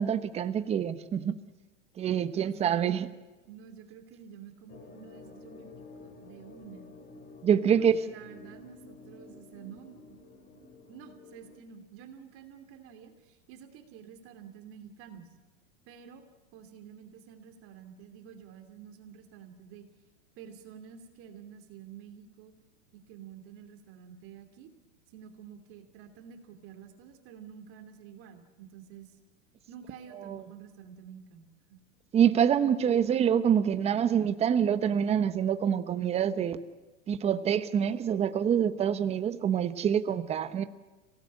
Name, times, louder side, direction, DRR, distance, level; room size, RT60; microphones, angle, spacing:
voice 1, 0.0-1.4 2.0-3.1 7.4-7.9 30.3-30.4 32.1-36.6 37.1-40.6, right 8 dB, 15° right, 12 dB, 0.9 m, -26 dB
voice 2, 2.3-2.9 3.5-6.9 7.8-10.2 10.9-15.3 15.9-16.2 16.5-19.8 20.4-22.5 22.9-24.7 25.1-29.2 29.7-31.8, right 8 dB, 35° right, 6 dB, 2.8 m, -49 dB
sound 1, 4.7-11.6, left 3 dB, 25° left, 3.0 m, -51 dB
26.0 x 17.5 x 8.7 m, 1.2 s
supercardioid pair, 145°, 37 cm